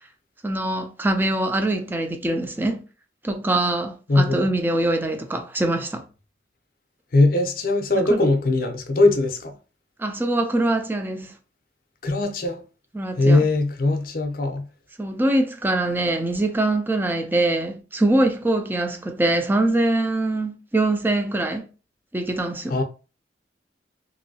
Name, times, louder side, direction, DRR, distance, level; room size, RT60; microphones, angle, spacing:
voice 1, 0.4-2.8 3.2-6.0 8.0-8.2 10.0-11.4 12.9-13.4 15.0-21.7 22.1-22.8, right 2 dB, 10° right, 0.4 m, -23 dB
voice 2, 4.1-4.5 7.1-9.5 12.0-12.6 13.2-14.7 22.7-22.8, left 2 dB, 50° left, 0.6 m, -20 dB
3.0 x 2.7 x 2.7 m
head